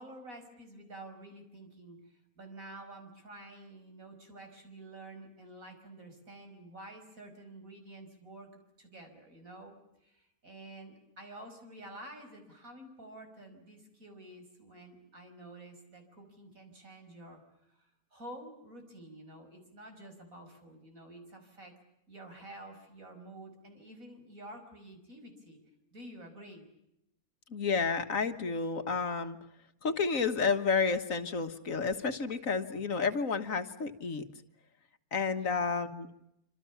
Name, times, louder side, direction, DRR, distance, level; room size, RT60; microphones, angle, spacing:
voice 1, 0.0-9.8 10.0-17.4 17.7-21.7 22.1-25.6 25.9-26.6 35.4-35.6, right 1 dB, 65° right, 5 dB, 6.0 m, -50 dB
voice 2, 27.5-29.4 29.8-34.2 35.1-36.1, left 5 dB, 65° left, 8 dB, 1.8 m, -31 dB
27.0 x 26.5 x 7.1 m, 0.81 s
omnidirectional pair, 1.5 m